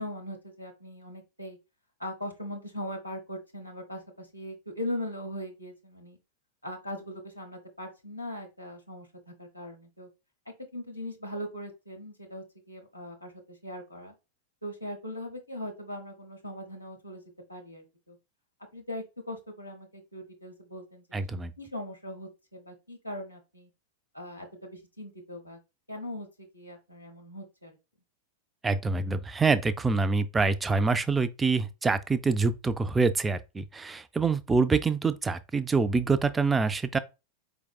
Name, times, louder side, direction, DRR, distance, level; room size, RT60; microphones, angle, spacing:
voice 1, 0.0-1.6 2.0-6.2 6.6-10.1 10.7-14.1 14.6-17.2 17.5-18.2 18.7-23.7 24.1-25.6 25.9-27.8, left 1 dB, 85° left, 1.0 m, -40 dB
voice 2, 21.1-21.5 28.6-37.0, right 4 dB, 15° right, 0.3 m, -26 dB
4.6 x 3.6 x 2.2 m
figure-of-eight pair, 90°, 0 cm